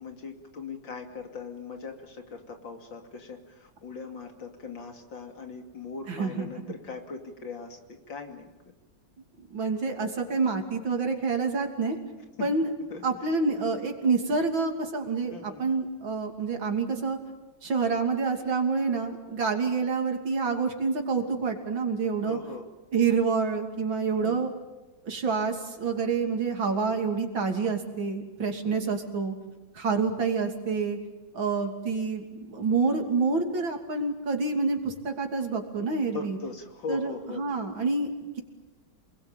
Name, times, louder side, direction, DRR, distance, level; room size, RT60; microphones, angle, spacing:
voice 1, 0.0-8.5 12.4-12.5 12.9-13.0 15.3-15.6 22.2-22.7 24.2-24.5 28.6-29.0 36.1-37.4, left 4 dB, 75° left, 4 dB, 3.4 m, -40 dB
voice 2, 6.1-6.6 9.5-12.0 12.4-12.7 13.0-17.2 17.6-22.4 22.9-24.5 25.0-29.4 29.7-31.0 31.3-36.4 36.9-38.4, right 4 dB, 85° right, 4 dB, 3.7 m, -27 dB
29.0 x 20.5 x 9.0 m, 1.2 s
omnidirectional pair, 2.1 m